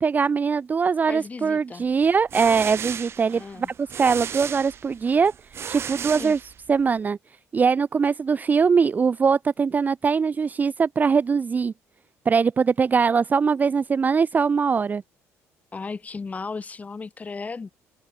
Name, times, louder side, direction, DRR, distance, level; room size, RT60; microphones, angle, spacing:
voice 1, 0.0-3.7 4.0-5.3 5.7-6.4 6.7-7.2 7.5-11.7 12.3-15.0, right 5 dB, 30° right, 0.6 m, -21 dB
voice 2, 1.1-1.8 3.3-3.7 6.1-6.4 15.7-17.7, left 4 dB, 25° left, 4.8 m, -35 dB
sound 1, 2.0-6.9, right 8 dB, 45° right, 3.1 m, -35 dB
cardioid pair, 105°, 6 cm